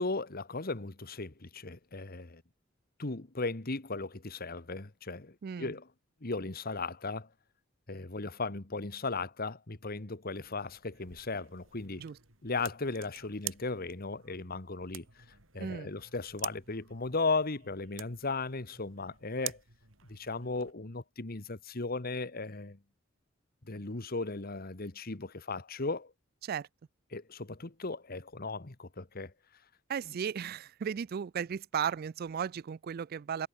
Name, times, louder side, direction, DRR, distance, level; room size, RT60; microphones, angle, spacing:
voice 1, 0.0-2.4 3.0-5.9 6.2-7.3 7.9-12.0 12.4-15.2 15.5-19.6 20.1-22.8 23.6-26.1 27.1-29.3, left 3 dB, 50° left, 1.5 m, -36 dB
voice 2, 5.4-5.7 12.0-12.2 15.6-15.9 26.4-26.7 29.9-33.5, right 7 dB, 50° right, 0.4 m, -35 dB
sound 1, 10.3-20.7, right 13 dB, 75° right, 5.5 m, -48 dB
head